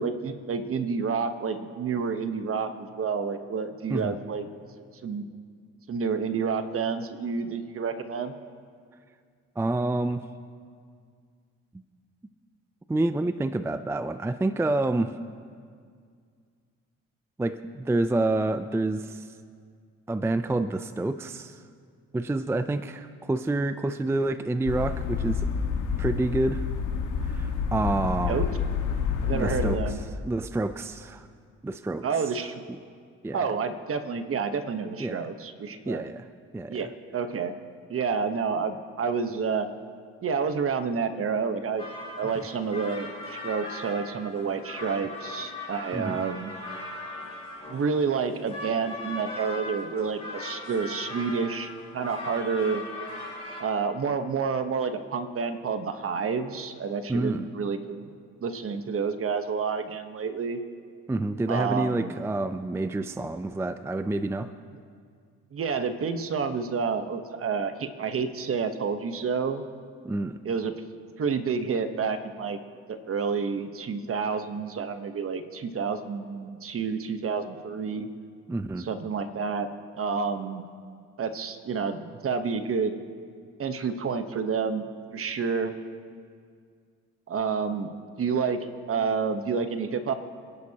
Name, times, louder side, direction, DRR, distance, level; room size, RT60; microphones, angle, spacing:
voice 1, 0.0-4.4 5.0-5.3 5.9-8.3 28.3-28.4 29.2-30.0 32.0-32.6 33.3-36.0 36.7-37.6 37.9-39.7 40.2-41.8 42.2-46.5 47.7-52.8 53.6-58.1 58.4-60.6 61.5-62.2 65.5-69.6 70.4-70.7 71.2-72.6 72.9-78.1 78.8-79.7 80.0-80.6 81.2-82.9 83.6-84.8 85.1-85.7 87.3-87.9 88.2-90.1, right 5 dB, 45° right, 8 dB, 1.1 m, -29 dB
voice 2, 9.6-10.3 12.9-15.2 17.4-19.4 20.1-21.6 22.1-25.5 26.0-26.7 27.2-28.5 29.3-31.3 31.6-32.3 32.7-32.8 33.2-33.5 35.0-35.2 35.9-36.3 36.5-36.9 42.4-42.5 45.9-46.2 57.1-57.5 61.1-64.5 70.0-70.4 78.5-78.9, right 2 dB, 10° right, 11 dB, 0.4 m, -28 dB
sound 1, 24.7-29.8, left 6 dB, 85° left, 1.6 m, -28 dB
sound 2, 41.8-53.6, left 2 dB, 20° left, 4.3 m, -39 dB
26.5 x 11.0 x 2.9 m, 2.1 s
cardioid pair, 90°, 30 cm